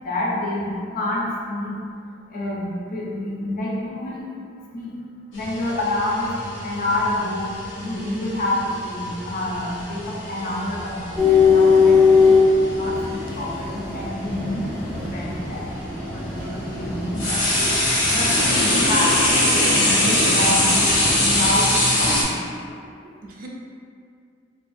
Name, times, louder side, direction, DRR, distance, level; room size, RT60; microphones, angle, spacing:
voice 1, 0.0-1.8 2.3-4.2 4.7-4.9 5.3-6.3 6.6-7.5 7.8-12.4 12.7-17.6 18.1-20.9 21.2-21.7 22.0-22.5, left 1 dB, 45° left, -4 dB, 0.5 m, -27 dB
sound 1, 5.3-13.5 14.6-14.7 15.5-22.2, left 1 dB, 90° left, 0.8 m, -23 dB
sound 2, 11.2-21.5, left 5 dB, 5° left, 0.6 m, -21 dB
voice 2, 23.0-23.5, right 2 dB, 45° right, -2 dB, 0.3 m, -41 dB
2.5 x 2.3 x 2.5 m, 2.3 s
head